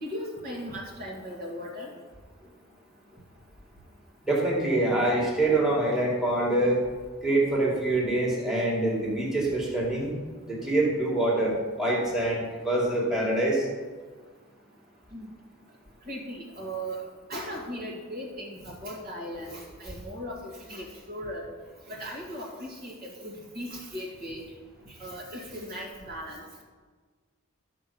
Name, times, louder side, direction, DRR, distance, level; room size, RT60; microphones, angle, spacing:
voice 1, 0.0-1.9 2.4-2.5 3.1-3.2 15.1-15.3 16.0-17.0 17.3-21.5 21.9-24.5 24.9-26.4, equal, 45° right, -3 dB, 1.9 m, -38 dB
voice 2, 4.2-6.8 7.2-10.2 10.5-13.7, right 1 dB, ahead, -4 dB, 2.1 m, -25 dB
12.5 x 4.6 x 7.0 m, 1.5 s
head